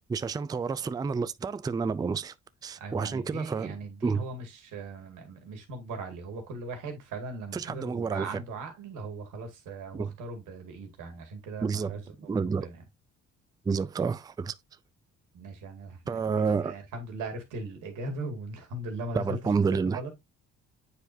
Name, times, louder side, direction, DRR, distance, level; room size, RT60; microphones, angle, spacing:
voice 1, 0.0-2.3 2.6-3.7 4.0-4.2 7.5-8.4 10.0-10.1 11.6-11.9 12.3-12.7 13.7-14.5 16.1-16.8 19.1-20.0, right 5 dB, 15° right, 0.3 m, -29 dB
voice 2, 2.8-12.8 15.3-19.4 19.9-20.1, right 2 dB, 90° right, 2.1 m, -39 dB
8.1 x 4.7 x 2.6 m
cardioid pair, 90°, 30 cm